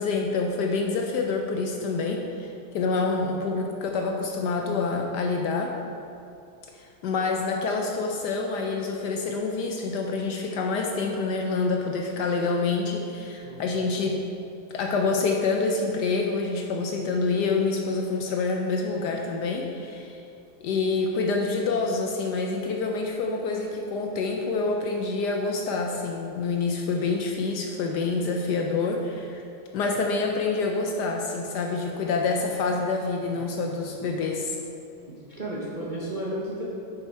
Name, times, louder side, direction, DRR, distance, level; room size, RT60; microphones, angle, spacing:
voice 1, 0.0-5.7 7.0-14.2 14.7-20.2 20.6-29.4 29.7-34.6, left 4 dB, 70° left, 2 dB, 1.1 m, -27 dB
voice 2, 35.4-36.6, right 1 dB, 40° right, -7 dB, 0.7 m, -33 dB
6.7 x 5.6 x 4.6 m, 2.6 s
omnidirectional pair, 2.1 m